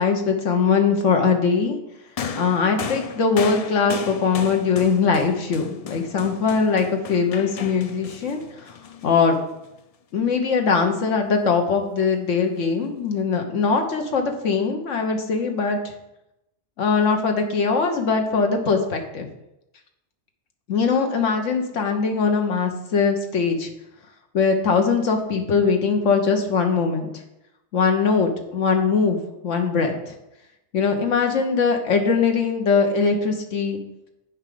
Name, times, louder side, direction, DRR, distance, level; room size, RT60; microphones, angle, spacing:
voice 1, 0.0-1.8 2.3-8.4 9.0-9.4 10.1-15.8 16.8-19.3 20.7-23.7 24.3-27.1 27.7-29.2 29.4-29.9 30.7-33.8, left 5 dB, 85° left, 4 dB, 1.4 m, -21 dB
sound 1, 2.2-9.7 10.7-10.8, left 7 dB, 70° left, 0.3 m, -35 dB
7.3 x 4.8 x 6.6 m, 0.87 s
omnidirectional pair, 1.2 m